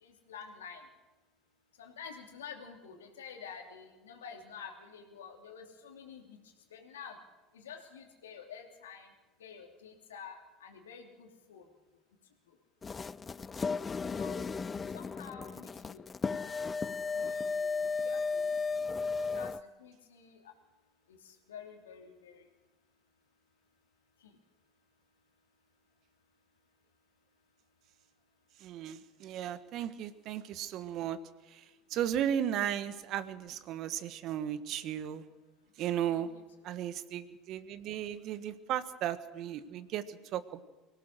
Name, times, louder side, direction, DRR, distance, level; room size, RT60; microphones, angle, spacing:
voice 1, 0.0-0.8 1.8-6.4 6.7-7.2 7.5-9.1 9.4-11.6 14.1-14.5 14.9-16.0 17.1-17.7 18.0-18.6 19.2-19.5 19.8-20.4 21.1-21.2 21.5-22.4 36.1-36.3, left 6 dB, 85° left, 3 dB, 3.0 m, -49 dB
sound 1, 12.8-19.6, left 4 dB, 25° left, 0.6 m, -35 dB
voice 2, 28.6-31.2 31.5-35.2 35.8-36.3 36.6-40.6, right 10 dB, 55° right, 13 dB, 1.5 m, -35 dB
24.5 x 17.5 x 6.4 m, 1.2 s
hypercardioid pair, 75°, 0 cm